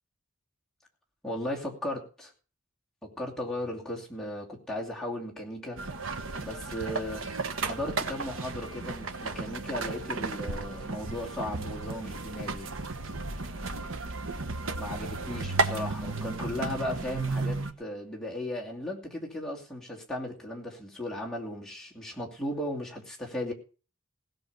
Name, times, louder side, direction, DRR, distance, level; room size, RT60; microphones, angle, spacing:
voice 1, 1.2-2.3 3.0-5.8 6.4-7.2 7.6-12.7 14.8-23.5, left 1 dB, 5° left, -3 dB, 2.5 m, -36 dB
sound 1, 5.8-17.7, right 3 dB, 75° right, 1.2 m, -34 dB
17.0 x 6.5 x 6.6 m, 0.37 s
head